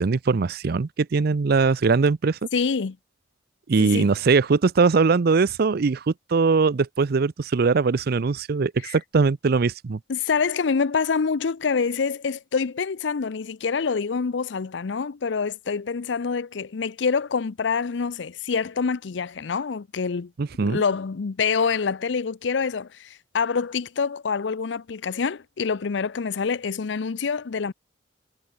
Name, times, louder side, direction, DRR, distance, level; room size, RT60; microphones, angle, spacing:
voice 1, 0.0-2.4 3.7-10.0 20.4-20.8, right 4 dB, 55° right, 0.5 m, -21 dB
voice 2, 2.5-3.0 3.8-4.1 8.8-9.0 10.1-20.3 20.6-27.7, left 5 dB, 70° left, 0.5 m, -26 dB
head